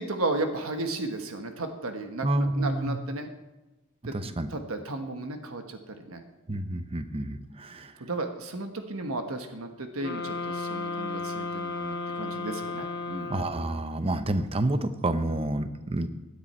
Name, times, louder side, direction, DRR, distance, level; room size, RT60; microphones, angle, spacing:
voice 1, 0.0-3.3 4.1-4.2 4.5-6.2 8.0-13.3, right 2 dB, 85° right, 6 dB, 1.3 m, -34 dB
voice 2, 2.2-3.0 4.0-4.5 6.5-8.0 13.3-16.1, right 1 dB, 25° right, 10 dB, 0.7 m, -29 dB
sound 1, 10.0-13.9, left 3 dB, 50° left, 1.0 m, -34 dB
17.0 x 10.0 x 4.3 m, 1.0 s
head